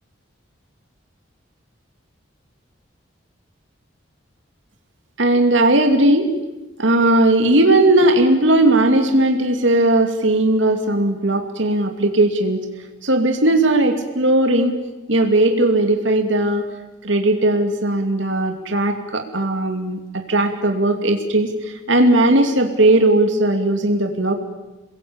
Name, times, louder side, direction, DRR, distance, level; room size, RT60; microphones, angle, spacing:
voice 1, 5.2-6.3 6.8-12.7 13.0-14.8 15.1-16.7 17.0-24.4, right 1 dB, 75° right, 4 dB, 2.6 m, -17 dB
28.5 x 21.5 x 8.8 m, 1.1 s
head